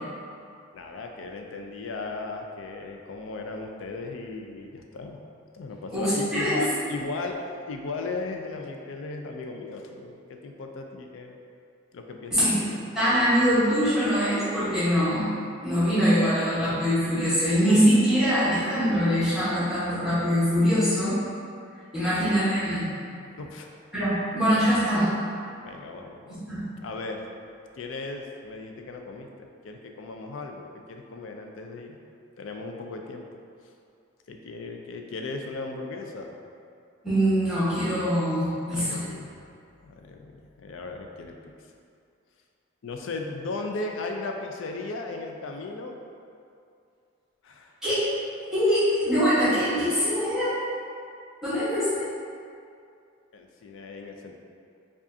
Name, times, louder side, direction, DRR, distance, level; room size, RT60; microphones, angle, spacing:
voice 1, 0.7-5.2 5.5-7.4 7.7-11.4 11.9-12.8 22.0-22.1 23.4-23.8 25.6-26.4 26.8-27.2 27.8-32.0 32.4-33.3 34.3-36.3 38.7-39.4 39.8-41.5 42.8-45.9 47.4-47.7 53.3-54.4, left 3 dB, 70° left, 3 dB, 0.4 m, -36 dB
voice 2, 5.9-6.6 12.3-12.6 12.9-15.3 15.6-21.2 21.9-22.9 23.9-25.1 26.3-26.6 37.0-39.0 47.8-48.0 48.5-50.5 51.4-52.1, equal, 5° right, -15 dB, 1.1 m, -23 dB
4.8 x 2.4 x 2.7 m, 2.4 s
head